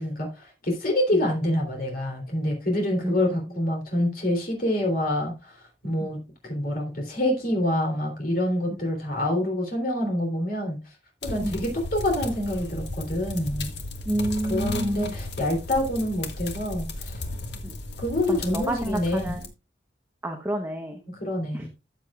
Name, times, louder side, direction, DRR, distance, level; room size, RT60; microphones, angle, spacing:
voice 1, 0.0-5.6 5.8-10.8 11.2-13.7 14.5-17.2 18.0-19.3 21.1-21.7, left 1 dB, 55° left, 1 dB, 3.2 m, -26 dB
voice 2, 3.0-3.6 6.0-6.2 11.4-11.6 14.1-15.1 17.6-17.8 18.3-19.4 20.2-21.0 21.5-21.7, right 1 dB, 10° right, 3 dB, 1.0 m, -30 dB
sound 1, 11.2-19.5, left 2 dB, 70° left, 1.6 m, -35 dB
13.5 x 7.5 x 2.4 m, 0.27 s
head